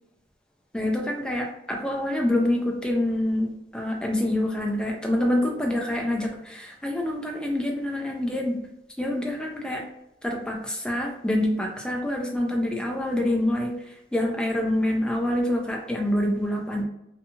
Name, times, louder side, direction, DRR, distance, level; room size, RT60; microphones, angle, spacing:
voice 1, 0.7-8.6 9.0-9.8 10.2-16.8, left 1 dB, 5° left, 1 dB, 0.4 m, -26 dB
2.6 x 2.3 x 2.8 m, 0.85 s
head